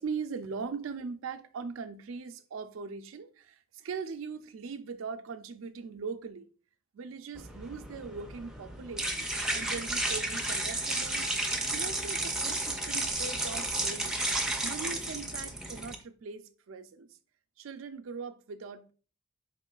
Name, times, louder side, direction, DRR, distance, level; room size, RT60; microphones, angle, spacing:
voice 1, 0.0-6.5 6.9-9.3 9.5-11.3 11.7-14.2 14.6-17.2 17.6-18.9, right 5 dB, 85° right, 0.4 m, -40 dB
sound 1, 7.4-15.9, right 2 dB, 5° right, 0.4 m, -32 dB
4.4 x 3.6 x 2.3 m
head